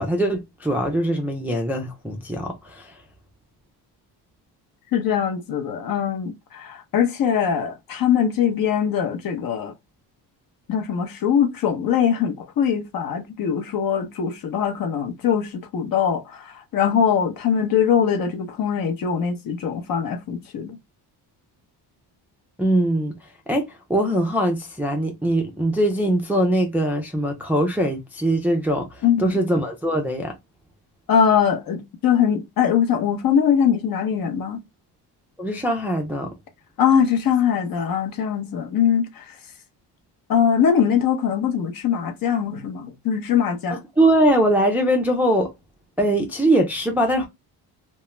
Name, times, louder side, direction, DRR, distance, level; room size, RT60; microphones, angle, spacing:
voice 1, 0.0-2.9 22.6-23.1 23.5-28.9 29.2-30.3 35.4-36.3 44.0-45.5 46.0-47.3, right 1 dB, 5° right, 0.3 m, -21 dB
voice 2, 4.9-9.7 10.7-20.8 29.0-29.4 31.1-34.6 36.8-39.2 40.3-43.8, left 8 dB, 55° left, 0.7 m, -22 dB
2.3 x 2.1 x 3.0 m
cardioid pair, 120°, 42 cm